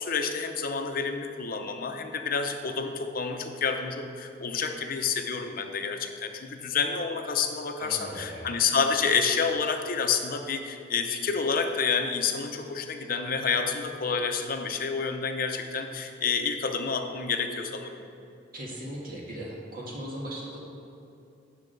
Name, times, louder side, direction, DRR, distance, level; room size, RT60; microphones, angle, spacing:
voice 1, 0.0-18.0, left 5 dB, 50° left, 6 dB, 0.6 m, -29 dB
voice 2, 7.8-8.5 18.5-20.6, right 1 dB, 50° right, -3 dB, 1.6 m, -38 dB
9.4 x 6.0 x 3.9 m, 2.6 s
head